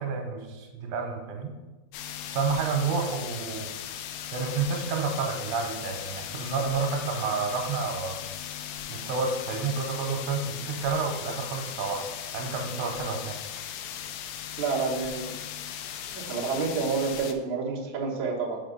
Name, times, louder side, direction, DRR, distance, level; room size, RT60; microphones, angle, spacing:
voice 1, 0.0-1.5 2.3-3.7 4.3-8.2 8.9-12.0 12.3-13.4, right 4 dB, 85° right, 3 dB, 2.9 m, -30 dB
sound 1, 1.9-17.3, left 9 dB, 85° left, 2.4 m, -38 dB
voice 2, 14.6-15.4 16.1-18.6, right 4 dB, 70° right, -4 dB, 1.8 m, -29 dB
5.7 x 5.6 x 3.8 m, 1.1 s
omnidirectional pair, 5.0 m